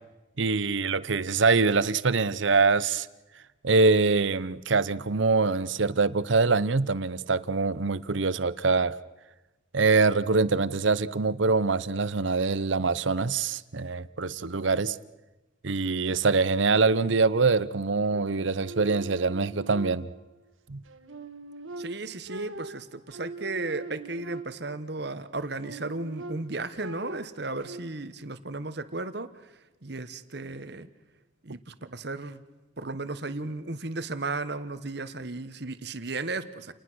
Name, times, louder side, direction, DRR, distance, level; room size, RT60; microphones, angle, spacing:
voice 1, 0.4-3.1 3.6-8.9 9.7-15.0 15.6-20.1 20.7-20.8, right 4 dB, 70° right, 0.8 m, -24 dB
sound 1, 18.1-20.4 20.9-24.9 25.4-27.8, right 2 dB, 85° right, 1.7 m, -42 dB
voice 2, 21.8-29.5 29.8-30.9 31.4-32.4 32.8-36.7, right 2 dB, 55° right, 1.3 m, -35 dB
29.0 x 20.0 x 6.3 m
head